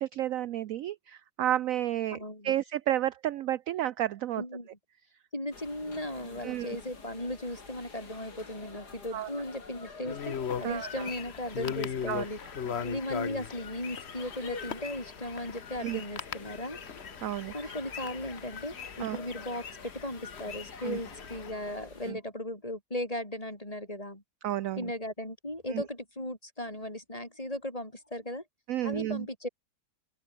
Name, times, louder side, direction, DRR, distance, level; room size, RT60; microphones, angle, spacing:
voice 1, 0.0-2.2 2.4-4.4 6.4-6.8 9.1-9.3 10.6-11.1 12.1-12.2 15.8-16.0 17.2-17.7 19.0-19.2 20.8-21.0 22.1-22.2 24.4-24.9 25.7-25.8 28.7-29.3, right 12 dB, 65° right, 0.9 m, -31 dB
voice 2, 2.1-2.5 4.4-4.7 5.3-12.4 12.7-16.8 17.5-24.2 24.8-28.4 28.8-29.5, left 1 dB, 20° left, 5.5 m, -37 dB
sound 1, 5.5-22.1, left 4 dB, 65° left, 3.7 m, -48 dB
sound 2, 10.0-21.5, left 8 dB, 45° left, 1.0 m, -39 dB
open air
omnidirectional pair, 1.9 m